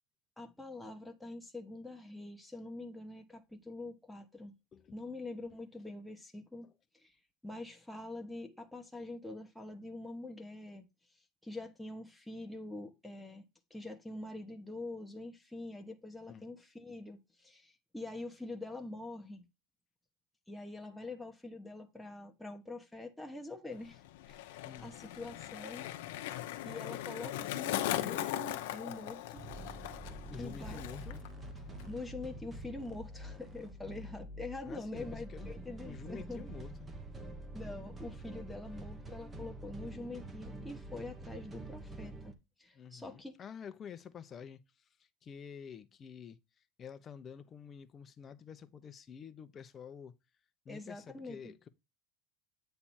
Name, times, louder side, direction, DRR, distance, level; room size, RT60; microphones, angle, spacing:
voice 1, 0.4-4.5 4.9-6.7 6.9-7.2 7.4-10.9 11.4-13.4 13.7-19.5 20.5-25.9 26.6-29.4 30.4-30.8 31.9-36.5 37.5-43.4 50.7-51.5, left 2 dB, 5° left, 1.0 m, -45 dB
Skateboard, 23.7-31.3 31.5-32.1, left 14 dB, 85° left, 0.8 m, -39 dB
sound 1, 29.3-42.3, right 1 dB, 20° right, 1.1 m, -46 dB
voice 2, 30.3-31.2 34.7-35.5 35.8-36.9 42.7-50.2 50.6-51.7, left 7 dB, 30° left, 0.8 m, -49 dB
8.6 x 3.4 x 4.3 m
supercardioid pair, 135°, 0 cm